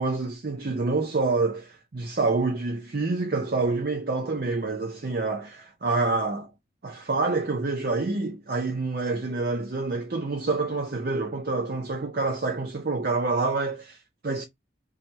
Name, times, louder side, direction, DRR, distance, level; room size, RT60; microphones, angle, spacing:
voice 1, 0.0-6.5 6.8-14.5, right 3 dB, 55° right, 0.5 m, -27 dB
5.5 x 2.2 x 2.9 m
head